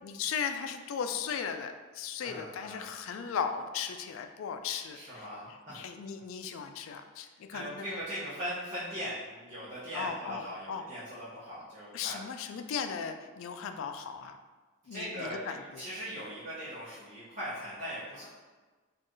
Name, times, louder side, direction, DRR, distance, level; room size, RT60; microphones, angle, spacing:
voice 1, 0.0-5.3 5.7-8.0 9.9-10.9 11.9-14.4 14.9-15.9, left 7 dB, 75° left, 8 dB, 0.3 m, -37 dB
voice 2, 2.2-2.9 4.9-5.8 7.2-12.2 14.9-18.3, equal, 40° right, -10 dB, 0.8 m, -40 dB
4.3 x 2.4 x 3.1 m, 1.3 s
head